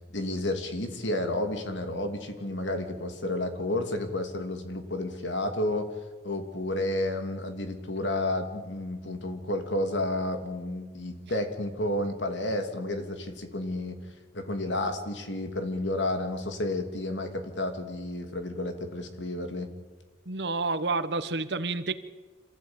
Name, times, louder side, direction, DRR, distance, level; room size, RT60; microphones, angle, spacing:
voice 1, 0.1-5.9 6.2-14.0 14.3-19.7, left 1 dB, 90° left, 6 dB, 2.8 m, -31 dB
voice 2, 20.3-21.9, right 3 dB, 65° right, 12 dB, 1.2 m, -29 dB
26.5 x 15.5 x 8.9 m, 1.3 s
head